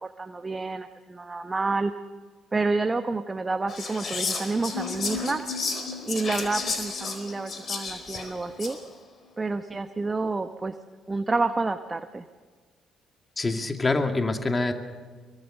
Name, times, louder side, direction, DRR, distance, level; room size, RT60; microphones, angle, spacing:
voice 1, 0.0-1.9 2.5-5.4 6.1-8.8 9.4-10.7 11.1-12.2, right 3 dB, 25° right, 9 dB, 1.0 m, -29 dB
Whispering, 3.7-8.9, left 4 dB, 45° left, 4.5 m, -33 dB
sound 1, 4.7-8.6 8.9-9.0 9.2-9.3, left 4 dB, 75° left, 4.1 m, -39 dB
voice 2, 13.4-14.7, left 3 dB, 30° left, 5 dB, 2.4 m, -25 dB
24.0 x 23.5 x 6.7 m, 1.5 s
hypercardioid pair, 45°, 0 cm